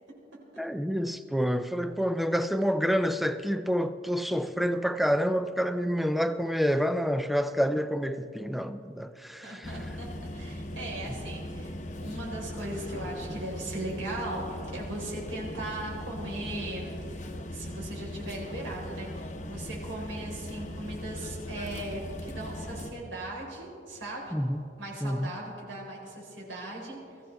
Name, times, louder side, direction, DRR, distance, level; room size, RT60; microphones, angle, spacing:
voice 1, 0.6-9.7 24.3-24.6 25.0-25.3, equal, ahead, 0.4 m, -28 dB
voice 2, 9.4-10.1 10.3-14.4 14.7-24.3 24.8-27.2, right 1 dB, 80° right, 4.3 m, -38 dB
sound 1, 9.6-22.9, left 1 dB, 35° left, 0.9 m, -39 dB
23.0 x 15.0 x 3.4 m
head